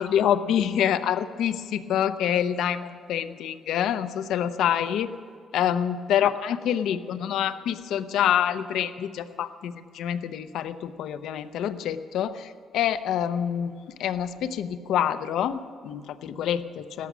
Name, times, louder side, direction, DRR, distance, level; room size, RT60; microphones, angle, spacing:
voice 1, 0.0-5.1 5.5-13.7 14.0-17.1, left 9 dB, 75° left, 11 dB, 0.7 m, -26 dB
17.5 x 13.5 x 6.1 m, 2.2 s
cardioid pair, 170°, 0 cm